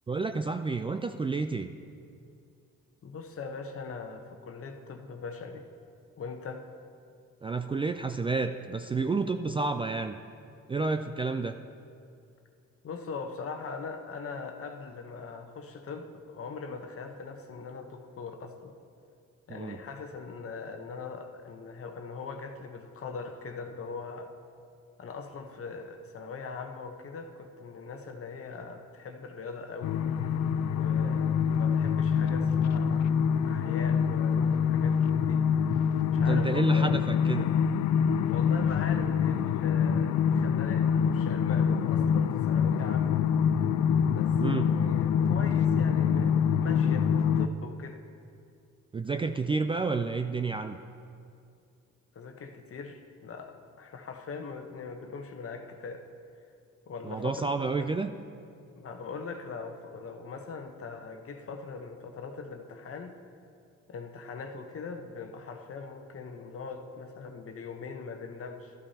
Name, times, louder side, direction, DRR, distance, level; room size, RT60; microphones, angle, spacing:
voice 1, 0.1-1.7 7.4-10.2 10.7-11.6 19.5-19.8 36.2-37.5 44.4-44.7 48.9-50.8 57.0-58.1, right 4 dB, 20° right, 7 dB, 0.3 m, -30 dB
voice 2, 3.0-5.7 6.2-6.7 12.8-18.8 19.5-24.4 25.0-30.1 30.6-35.5 36.1-37.0 38.2-43.2 44.1-48.0 52.1-56.1 56.9-57.7 58.8-63.2 63.9-68.7, left 4 dB, 50° left, 5 dB, 1.0 m, -41 dB
sound 1, 29.8-47.5, left 7 dB, 65° left, 0.5 m, -25 dB
13.0 x 12.0 x 2.8 m, 2.4 s
cardioid pair, 90°, 30 cm